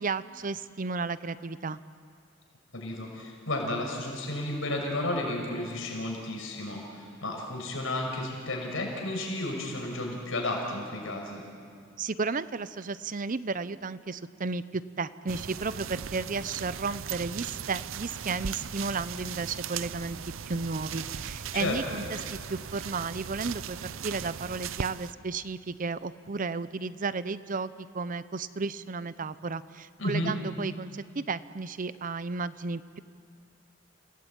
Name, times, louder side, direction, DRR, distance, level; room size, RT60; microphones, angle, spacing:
voice 1, 0.0-1.8 12.0-20.2 20.5-22.2 22.5-32.8, right 4 dB, 40° right, 15 dB, 0.7 m, -33 dB
voice 2, 2.7-11.4 21.5-21.8 30.0-30.3, left 1 dB, 80° left, 0 dB, 6.0 m, -32 dB
sound 1, 15.3-25.1, right 7 dB, 85° right, 0.7 m, -38 dB
29.0 x 17.5 x 8.9 m, 2.2 s
head